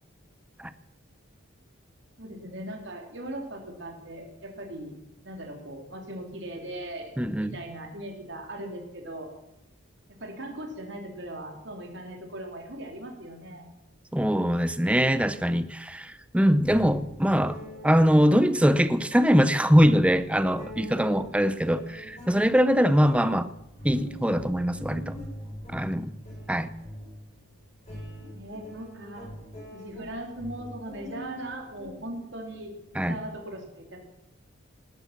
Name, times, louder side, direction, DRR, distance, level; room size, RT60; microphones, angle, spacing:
voice 1, 2.2-5.0 5.2-9.3 10.1-13.7 28.3-29.3 29.7-34.0, right 1 dB, 55° right, 2 dB, 3.4 m, -39 dB
voice 2, 7.2-7.6 14.1-17.6 17.8-23.5 23.8-25.1 25.7-26.1 26.5-26.7 32.9-33.2, equal, 5° right, 13 dB, 0.6 m, -22 dB
sound 1, 16.1-16.2 16.6-32.5, equal, 35° left, 7.7 m, -43 dB
19.5 x 11.5 x 5.9 m, 0.90 s
head